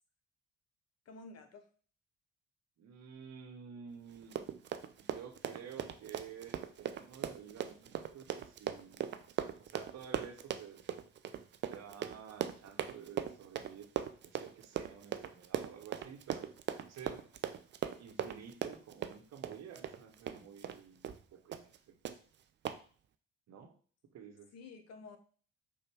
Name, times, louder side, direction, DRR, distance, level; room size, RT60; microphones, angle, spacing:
voice 1, 1.1-1.6 24.5-25.2, left 3 dB, 50° left, 7 dB, 0.9 m, -51 dB
voice 2, 2.8-4.6 5.0-9.1 9.6-10.8 11.7-13.9 14.2-16.5 16.9-17.2 18.0-21.9 23.5-23.8 24.1-24.5, right 7 dB, 50° right, 4 dB, 1.0 m, -51 dB
Run, 4.2-20.8 21.0-21.2 21.5-21.8 22.0-22.2 22.6-22.8, right 9 dB, 35° right, 0.5 m, -39 dB
5.2 x 2.3 x 4.5 m, 0.42 s
figure-of-eight pair, 45°, 33 cm